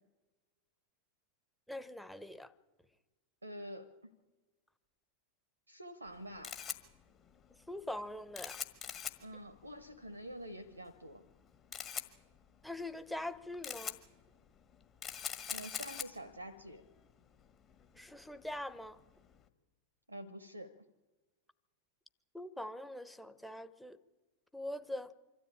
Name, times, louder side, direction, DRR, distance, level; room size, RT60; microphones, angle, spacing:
voice 1, 1.7-2.5 7.7-8.6 12.6-14.0 17.9-19.0 22.3-24.0 24.5-25.1, left 1 dB, ahead, 0.9 m, -43 dB
voice 2, 3.4-4.1 5.7-6.6 9.2-11.2 15.5-16.8 20.1-20.7, equal, 80° right, 1.0 m, -47 dB
Camera, 6.1-19.4, left 7 dB, 30° left, 1.7 m, -46 dB
25.5 x 13.0 x 8.7 m
figure-of-eight pair, 90°, 0 cm